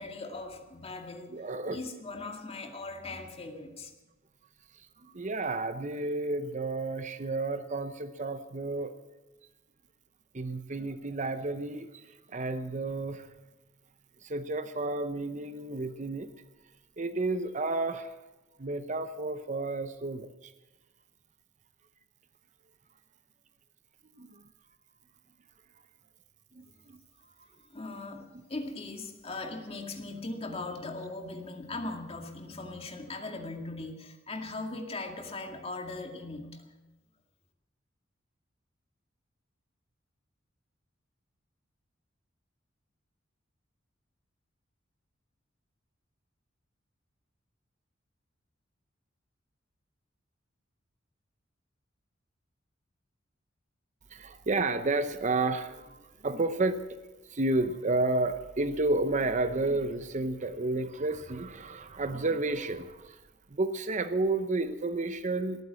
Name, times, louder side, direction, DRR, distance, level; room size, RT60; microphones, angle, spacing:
voice 1, 0.0-1.4 1.7-3.9 27.7-36.6, left 2 dB, 30° left, 3 dB, 2.1 m, -39 dB
voice 2, 1.3-1.8 5.0-8.9 10.3-13.3 14.2-16.3 17.0-18.1 18.6-20.5 24.2-24.5 26.5-27.0 28.6-28.7 54.1-56.8 57.3-63.2 63.5-65.6, right 2 dB, 40° right, 10 dB, 0.8 m, -31 dB
17.5 x 9.4 x 8.3 m, 1.1 s
head